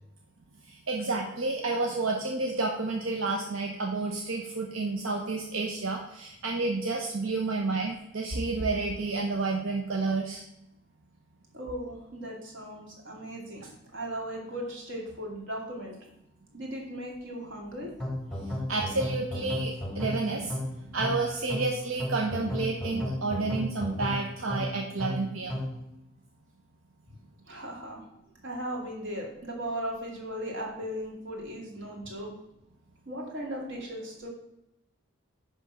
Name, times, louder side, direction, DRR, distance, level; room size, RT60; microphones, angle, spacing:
voice 1, 0.7-10.4 18.7-25.6, right 3 dB, 90° right, 0 dB, 1.0 m, -30 dB
voice 2, 11.5-13.6 13.9-16.0 16.5-17.9 27.5-28.0 28.4-32.4 33.1-34.3, equal, 65° right, -1 dB, 2.3 m, -37 dB
sound 1, 18.0-25.9, left 1 dB, ahead, 0.9 m, -34 dB
10.5 x 3.6 x 5.7 m, 0.84 s
head